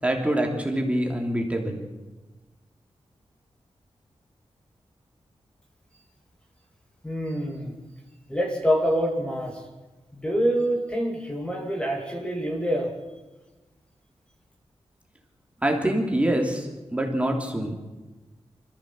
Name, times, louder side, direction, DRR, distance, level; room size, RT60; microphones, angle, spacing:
voice 1, 0.0-1.8 15.6-17.8, right 1 dB, 10° right, 2 dB, 3.0 m, -25 dB
voice 2, 7.0-7.8 8.3-9.6 10.1-13.0, equal, 10° left, 1 dB, 2.7 m, -26 dB
26.0 x 15.0 x 7.6 m, 1.2 s
wide cardioid pair, 165°, 10 cm